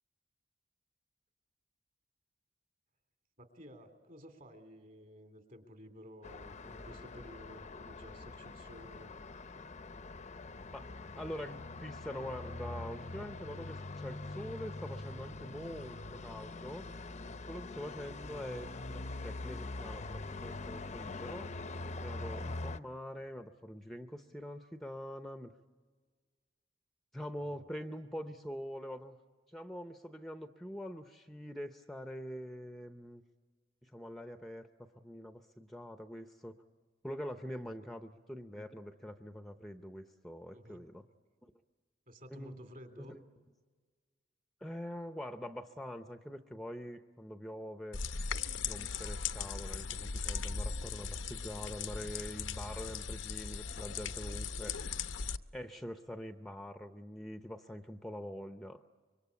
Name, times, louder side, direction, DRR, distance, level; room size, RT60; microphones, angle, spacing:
voice 1, 3.4-9.1 9.5-9.8 27.3-27.7 39.6-40.1 40.5-40.8 42.1-43.2, equal, 45° right, 6 dB, 3.3 m, -54 dB
Traffic noise roadway noise, 6.2-22.8, left 2 dB, 35° left, 0.7 m, -44 dB
voice 2, 10.7-16.9 17.5-21.5 22.0-25.5 27.1-29.2 29.5-33.2 33.8-34.7 35.0-36.6 37.0-41.0 42.3-42.6 43.0-43.2 44.6-48.0 48.7-54.8 55.5-58.8, equal, ahead, 7 dB, 0.7 m, -44 dB
sound 1, 47.9-55.4, left 5 dB, 80° left, 0.8 m, -38 dB
26.0 x 23.5 x 8.4 m, 1.5 s
head